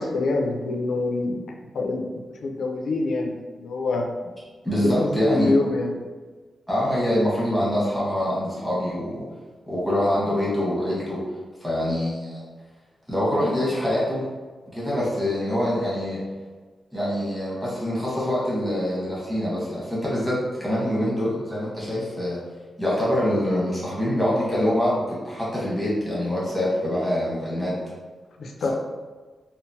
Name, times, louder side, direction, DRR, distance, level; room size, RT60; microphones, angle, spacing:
voice 1, 0.0-1.4 1.7-2.0 2.4-4.1 4.8-6.0 28.4-28.7, left 3 dB, 70° left, 2 dB, 0.4 m, -25 dB
voice 2, 4.6-5.5 6.7-9.2 9.7-11.2 11.6-12.5 13.1-14.2 14.7-16.2 16.9-22.4 22.8-27.7, left 1 dB, ahead, -8 dB, 1.0 m, -25 dB
3.7 x 2.0 x 2.7 m, 1.4 s
wide cardioid pair, 150°, 0 cm